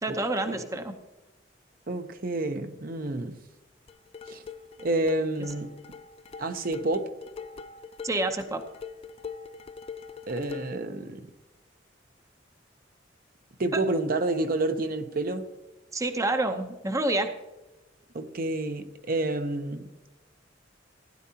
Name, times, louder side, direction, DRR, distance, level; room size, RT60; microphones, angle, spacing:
voice 1, 0.0-0.9 8.0-8.6 13.7-13.8 15.9-17.3, right 2 dB, 15° right, 0.7 m, -28 dB
voice 2, 1.9-3.4 4.3-4.4 4.8-5.7 6.4-7.2 10.3-11.3 13.6-15.5 18.1-19.9, right 2 dB, 50° right, 0.7 m, -29 dB
sound 1, 3.9-10.9, left 5 dB, 30° left, 0.4 m, -43 dB
16.0 x 11.0 x 2.8 m
head